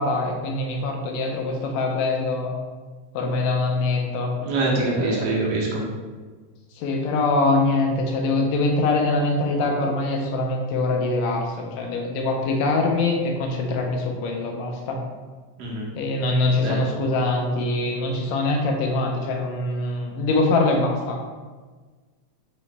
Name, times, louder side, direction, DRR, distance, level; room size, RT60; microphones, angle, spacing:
voice 1, 0.0-2.5 3.1-4.3 4.9-5.4 6.8-15.0 16.0-21.2, left 2 dB, 80° left, 2 dB, 1.7 m, -23 dB
voice 2, 4.4-5.8 15.6-15.9 16.6-16.8, right 2 dB, 70° right, -3 dB, 1.8 m, -24 dB
4.8 x 3.0 x 3.2 m, 1.4 s
omnidirectional pair, 3.3 m